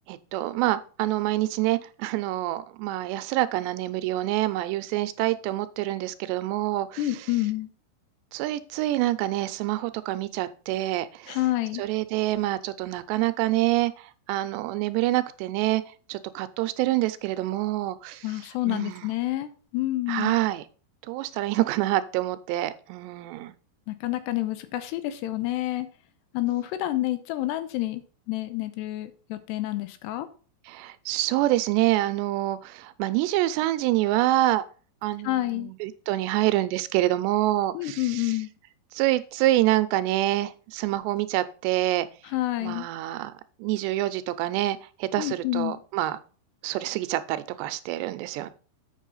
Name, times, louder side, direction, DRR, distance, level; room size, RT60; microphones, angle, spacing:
voice 1, 0.1-7.1 8.3-11.4 11.8-13.9 14.3-15.8 16.1-18.2 18.7-19.1 20.1-20.6 21.1-23.5 30.7-34.6 35.0-38.3 38.9-42.1 42.6-43.3 43.6-46.2 46.6-48.5, right 16 dB, 90° right, 13 dB, 2.9 m, -26 dB
voice 2, 7.0-7.7 11.3-11.8 18.2-20.3 23.9-25.9 26.3-28.0 28.3-30.3 35.2-35.7 37.7-38.5 42.2-42.9 45.2-45.8, left 16 dB, 85° left, 12 dB, 2.9 m, -28 dB
8.2 x 5.6 x 5.5 m, 0.38 s
omnidirectional pair, 4.8 m